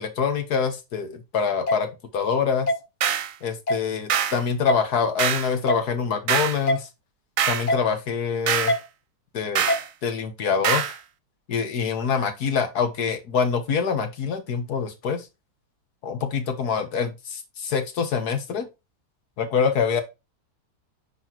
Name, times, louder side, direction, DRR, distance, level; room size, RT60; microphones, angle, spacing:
voice 1, 0.0-1.9 2.1-2.7 3.4-6.9 7.5-8.7 9.3-9.7 10.0-11.0 11.5-15.3 16.0-18.7 19.4-20.0, left 6 dB, 70° left, 1.8 m, -25 dB
sound 1, 1.7-1.8 2.7-2.8 3.7-3.8 4.7-4.8 5.7-5.8 6.7-6.8 7.7-7.8 8.7-8.8 9.7-9.8, left 1 dB, 50° left, 0.5 m, -23 dB
sound 2, 3.0-3.3 4.1-4.4 5.2-5.5 6.3-6.6 7.4-7.7 8.5-8.8 9.6-9.9 10.6-11.0, right 8 dB, 60° right, 1.1 m, -24 dB
9.6 x 4.0 x 3.0 m
omnidirectional pair, 1.7 m